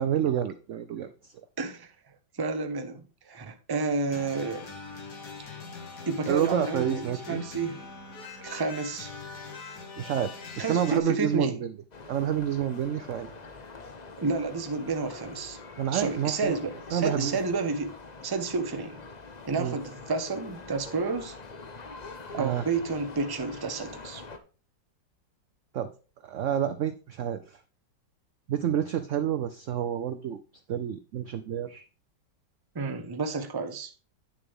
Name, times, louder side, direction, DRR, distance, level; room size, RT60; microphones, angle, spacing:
voice 1, 0.0-1.3 6.3-7.4 10.0-11.7 12.1-13.3 15.8-16.6 16.9-17.4 19.6-19.8 22.4-22.6 25.7-25.9 26.2-27.6 28.5-30.4 30.7-31.8, right 9 dB, 75° right, 0.7 m, -29 dB
voice 2, 1.6-1.9 2.4-4.7 6.1-7.8 8.4-9.1 10.6-11.6 14.2-15.6 15.9-17.9 18.2-19.0 19.5-21.3 22.3-24.2 32.7-33.9, right 4 dB, 20° right, 0.6 m, -30 dB
sound 1, 4.1-11.0, left 4 dB, 60° left, 2.0 m, -42 dB
sound 2, 11.9-24.4, left 3 dB, 40° left, 0.6 m, -44 dB
9.5 x 6.8 x 3.6 m
omnidirectional pair, 1.9 m